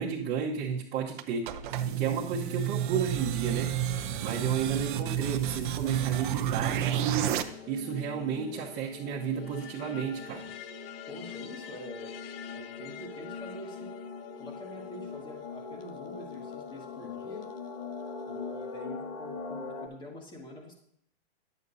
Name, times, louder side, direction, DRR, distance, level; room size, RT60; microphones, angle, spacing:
voice 1, 0.0-1.5 1.9-3.7 4.2-10.5, right 7 dB, 30° right, -6 dB, 1.0 m, -32 dB
sound 1, 1.2-7.4, right 11 dB, 50° right, 0.6 m, -30 dB
sound 2, 1.5-19.9, left 5 dB, 45° left, 1.2 m, -43 dB
sound 3, 6.1-18.8, left 10 dB, 65° left, 0.7 m, -51 dB
voice 2, 11.1-12.1 12.5-14.0 14.4-17.5 18.3-20.7, left 1 dB, 15° left, 0 dB, 1.8 m, -45 dB
10.5 x 8.0 x 2.7 m, 0.71 s
hypercardioid pair, 135°, 31 cm